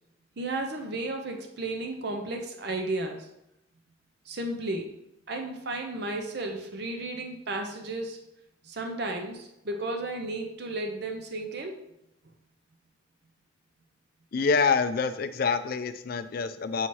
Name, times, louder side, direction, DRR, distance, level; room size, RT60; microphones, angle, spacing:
voice 1, 0.4-3.3 4.3-4.9 5.3-8.2 8.6-11.8, right 2 dB, 55° right, 4 dB, 0.7 m, -33 dB
voice 2, 14.3-16.9, left 5 dB, 50° left, 11 dB, 0.3 m, -26 dB
7.2 x 2.8 x 4.6 m, 0.85 s
head